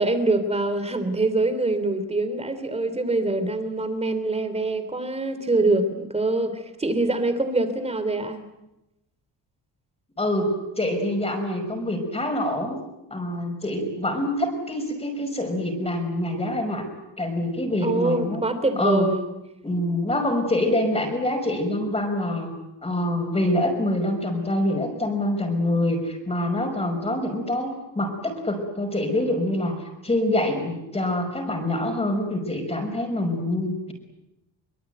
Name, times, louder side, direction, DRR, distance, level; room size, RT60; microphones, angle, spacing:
voice 1, 0.0-8.4 17.8-19.3, right 2 dB, 15° right, 10 dB, 3.2 m, -24 dB
voice 2, 10.2-12.8 13.1-16.9 17.2-18.4 18.8-19.1 19.6-22.5 22.8-33.9, left 1 dB, 15° left, 3 dB, 5.6 m, -25 dB
24.0 x 24.0 x 9.3 m, 0.92 s
cardioid pair, 155°, 42 cm